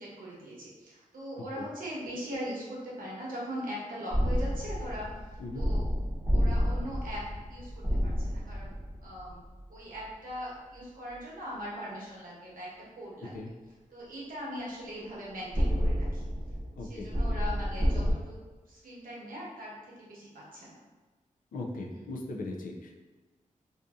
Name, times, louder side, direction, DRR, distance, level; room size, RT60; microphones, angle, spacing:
voice 1, 0.0-5.1 5.6-5.9 6.3-7.2 7.5-8.8 9.0-9.4 9.7-13.4 13.9-16.2 16.8-18.4 18.7-20.8 21.9-22.1, equal, 85° right, -6 dB, 0.9 m, -40 dB
sound 1, 4.1-9.7 15.5-18.1, equal, 20° right, 0.7 m, -29 dB
voice 2, 16.8-17.1 21.5-23.0, left 2 dB, 90° left, 1 dB, 0.4 m, -38 dB
2.6 x 2.6 x 2.3 m, 1.3 s
wide cardioid pair, 130°, 14 cm